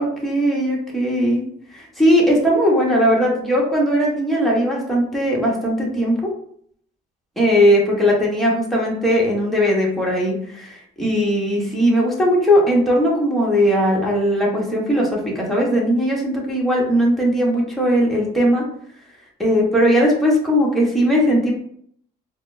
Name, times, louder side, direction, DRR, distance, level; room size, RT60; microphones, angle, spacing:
voice 1, 0.0-1.4 1.7-6.2 7.4-18.6 19.4-21.5, equal, ahead, -4 dB, 1.1 m, -18 dB
4.2 x 2.1 x 2.6 m, 0.64 s
cardioid pair, 110°, 17 cm